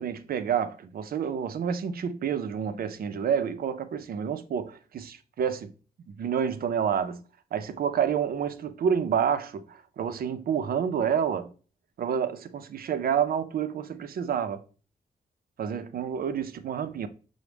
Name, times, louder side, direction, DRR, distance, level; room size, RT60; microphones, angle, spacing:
voice 1, 0.0-5.7 6.1-7.2 7.5-11.5 12.0-14.6 15.6-17.1, right 8 dB, 65° right, 0.4 m, -29 dB
5.9 x 2.1 x 3.3 m
cardioid pair, 90°, 17 cm